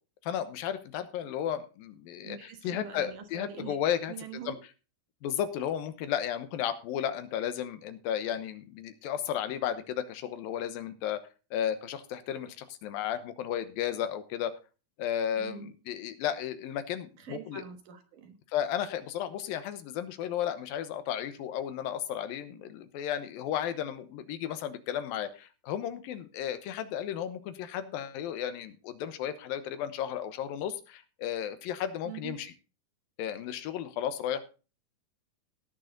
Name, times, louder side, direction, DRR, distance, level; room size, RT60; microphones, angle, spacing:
voice 1, 0.2-4.6 5.2-11.2 11.5-14.5 15.0-17.6 18.5-32.5 33.2-34.5, left 10 dB, 90° left, 11 dB, 2.8 m, -34 dB
voice 2, 2.2-3.8 4.1-4.6 15.4-15.7 17.2-18.4 32.1-32.4, right 7 dB, 65° right, 6 dB, 2.8 m, -44 dB
18.0 x 6.6 x 3.8 m, 0.33 s
omnidirectional pair, 4.1 m